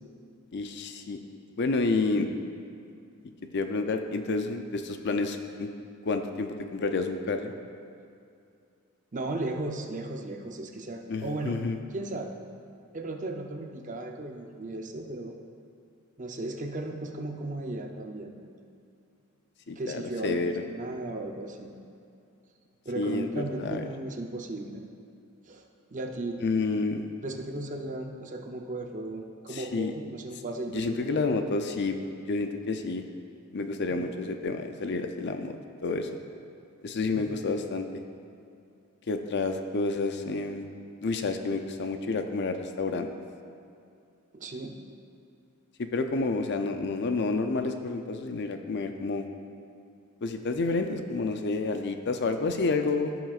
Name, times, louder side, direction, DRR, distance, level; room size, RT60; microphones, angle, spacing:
voice 1, 0.5-1.2 1.6-2.3 3.5-5.7 6.1-7.5 11.1-11.8 19.7-20.6 22.9-23.8 26.4-27.1 29.5-29.9 30.7-32.0 32.3-33.0 33.5-35.5 35.8-36.1 36.8-37.9 39.1-40.6 41.0-43.1 45.8-49.2 50.2-53.1, left 3 dB, 50° left, 6 dB, 0.5 m, -29 dB
voice 2, 9.1-11.6 11.9-12.3 12.9-15.3 16.2-18.3 19.7-21.7 22.8-24.8 25.5-26.4 27.2-31.2 33.9-34.1 37.1-37.3 44.3-44.7, right 2 dB, 35° right, 3 dB, 0.6 m, -36 dB
16.0 x 6.1 x 2.4 m, 2.5 s
head